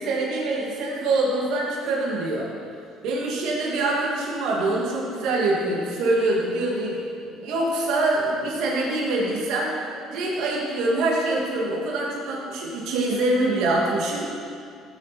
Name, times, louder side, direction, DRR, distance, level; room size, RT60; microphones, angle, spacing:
voice 1, 0.0-2.5 3.0-9.7 10.1-14.3, right 2 dB, 75° right, -3 dB, 2.5 m, -24 dB
15.5 x 7.6 x 4.5 m, 2.3 s
supercardioid pair, 90°, 0 cm